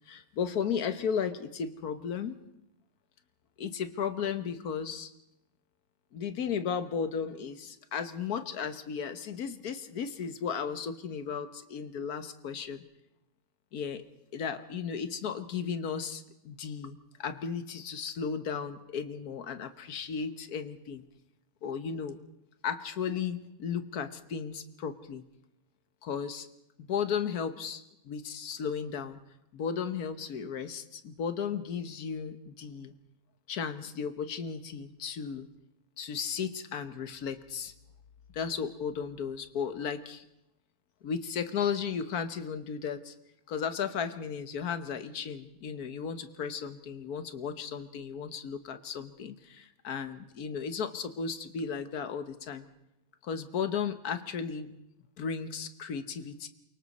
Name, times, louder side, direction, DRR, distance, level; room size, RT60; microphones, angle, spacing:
voice 1, 0.1-2.4 3.6-5.1 6.1-12.8 13.7-14.0 14.3-21.0 21.6-22.2 22.6-25.2 26.0-26.5 26.8-29.2 29.5-32.9 33.5-35.5 36.0-37.7 38.3-40.2 41.0-43.1 43.5-52.7 53.2-54.7 55.2-56.5, left 6 dB, 90° left, 10 dB, 1.6 m, -35 dB
28.0 x 24.0 x 4.2 m, 0.82 s
omnidirectional pair, 1.5 m